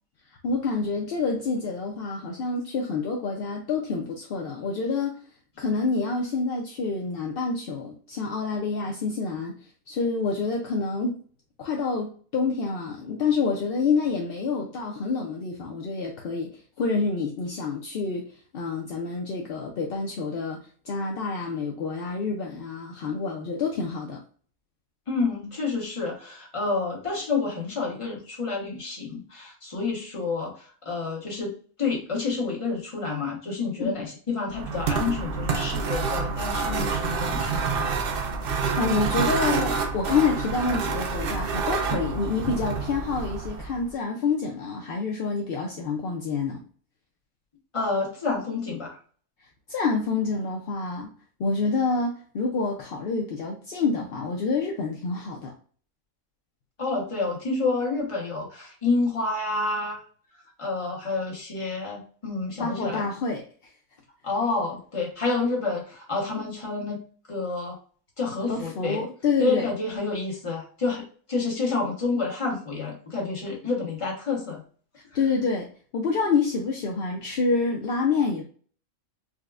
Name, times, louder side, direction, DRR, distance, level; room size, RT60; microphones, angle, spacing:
voice 1, 0.4-5.2 5.6-9.6 9.9-11.2 11.6-18.2 18.5-24.2 33.8-33.9 38.8-46.6 49.7-51.1 51.4-55.5 62.6-63.5 68.5-69.7 75.0-75.7 75.9-78.4, left 4 dB, 65° left, 0.6 m, -27 dB
voice 2, 25.1-30.5 30.8-37.9 47.7-49.0 56.8-60.0 60.6-63.1 64.2-67.0 67.3-67.8 68.2-69.0 69.4-74.6, left 3 dB, 25° left, 0.9 m, -29 dB
sound 1, 34.5-43.9, right 5 dB, 70° right, 0.5 m, -28 dB
4.5 x 2.1 x 2.4 m
omnidirectional pair, 1.5 m